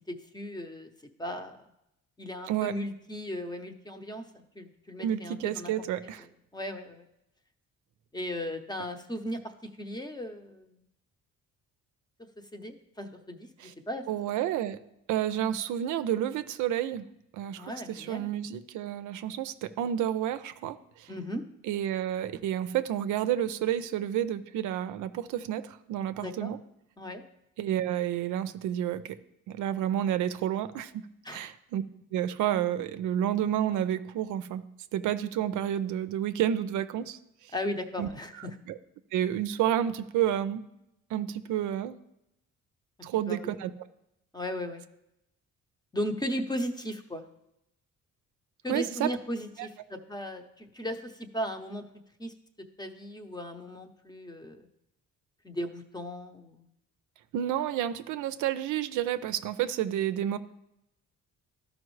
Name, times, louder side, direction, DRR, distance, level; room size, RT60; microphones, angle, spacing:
voice 1, 0.1-0.9 1.2-1.5 2.2-5.7 6.5-7.1 8.1-9.4 9.8-10.8 12.5-14.0 17.6-18.3 21.1-21.4 26.2-26.5 27.0-27.2 31.2-31.5 37.5-38.6 43.3-43.5 44.3-44.8 45.9-47.2 48.6-51.8 52.2-52.3 52.8-54.7 55.4-56.7, equal, 15° left, 6 dB, 0.8 m, -36 dB
voice 2, 5.0-6.3 13.6-13.7 14.1-14.8 15.1-17.1 17.3-21.1 21.6-26.6 27.6-29.2 29.5-30.9 31.3-31.8 32.1-34.6 34.9-37.5 38.0-38.1 38.7-38.8 39.1-40.6 41.1-42.0 43.0-43.7 48.7-49.1 57.3-60.4, right 11 dB, 80° right, 11 dB, 0.5 m, -30 dB
12.5 x 5.2 x 3.2 m, 0.84 s
cardioid pair, 90°, 30 cm